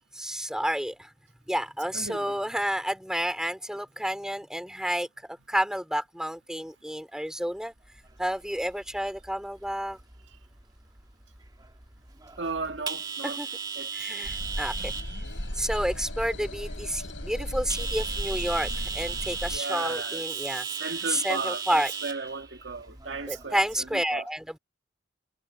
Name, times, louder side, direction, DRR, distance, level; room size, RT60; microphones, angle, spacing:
voice 1, 0.1-1.1 1.5-7.7 8.2-10.0 13.2-13.5 13.9-14.9 15.6-20.7 21.1-21.9 23.3-24.6, equal, 5° right, 4.0 m, -30 dB
voice 2, 1.9-2.3 12.4-13.4 13.8-14.2 19.5-20.3 20.5-23.6 23.9-24.2, right 4 dB, 70° right, 1.8 m, -35 dB
sound 1, 7.8-24.0, right 5 dB, 20° right, 2.3 m, -38 dB
sound 2, 14.2-19.6, left 1 dB, 90° left, 6.8 m, -35 dB
head